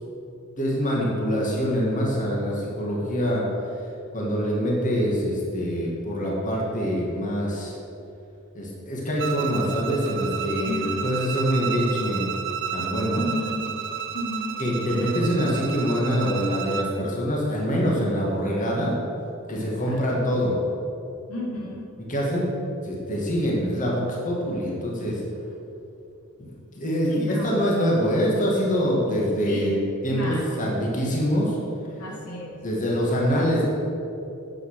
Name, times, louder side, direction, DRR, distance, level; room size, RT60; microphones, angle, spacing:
voice 1, 0.6-3.4 4.1-7.8 8.5-12.3 12.7-13.2 14.6-18.9 19.5-20.6 21.5-21.6 22.0-22.5 22.8-25.2 26.4-26.5 26.7-29.8 30.0-31.6 32.6-33.6, equal, 35° left, -3 dB, 2.2 m, -24 dB
Bowed string instrument, 9.2-17.0, right 8 dB, 60° right, 0.7 m, -32 dB
voice 2, 10.6-11.1 13.2-13.7 14.1-14.5 19.5-20.0 21.3-21.8 27.1-27.5 29.5-29.8 30.1-30.6 32.0-32.5, left 1 dB, 90° left, -3 dB, 2.6 m, -33 dB
10.0 x 8.0 x 6.4 m, 2.8 s
head